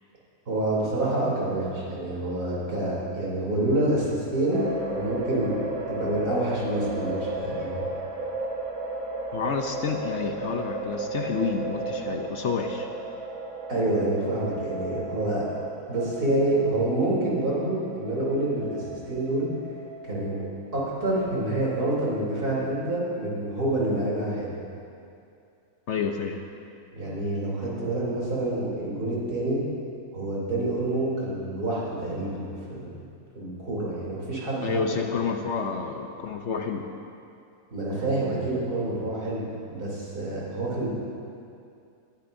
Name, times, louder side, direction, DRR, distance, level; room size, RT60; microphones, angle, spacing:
voice 1, 0.5-5.6 5.9-7.8 13.7-15.4 15.9-19.5 20.0-20.4 20.7-24.5 26.9-29.6 30.1-32.9 33.4-34.8 35.1-35.2 37.7-40.9, right 1 dB, 90° right, -6 dB, 3.8 m, -27 dB
sound 1, 4.5-21.5, right 2 dB, 70° right, 1.7 m, -35 dB
voice 2, 9.3-12.9 25.9-26.5 34.6-36.9, left 5 dB, 55° left, 4 dB, 0.9 m, -29 dB
20.0 x 12.0 x 2.7 m, 2.5 s
omnidirectional pair, 1.6 m